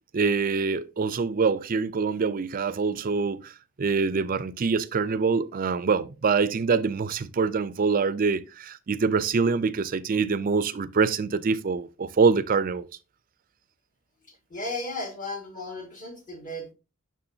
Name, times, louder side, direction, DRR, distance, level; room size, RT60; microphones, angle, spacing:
voice 1, 0.1-3.5 3.8-12.9, right 5 dB, 40° right, 0.4 m, -25 dB
voice 2, 14.5-16.7, left 2 dB, 35° left, 2.0 m, -35 dB
6.8 x 6.1 x 2.7 m
head